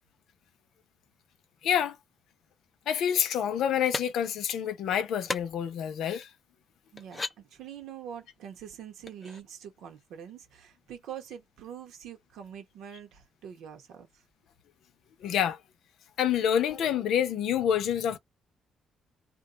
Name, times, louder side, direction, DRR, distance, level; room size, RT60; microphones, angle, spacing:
voice 1, 1.6-2.0 2.9-6.3 15.2-15.6 16.2-18.2, left 9 dB, 80° left, 0.6 m, -27 dB
sound 1, 3.9-4.1 5.3-5.4 6.2-6.3 7.0-7.4 9.1-9.4, left 3 dB, 30° left, 0.4 m, -34 dB
voice 2, 6.9-14.1, right 9 dB, 80° right, 1.0 m, -44 dB
2.6 x 2.3 x 3.8 m
cardioid pair, 90°, 0 cm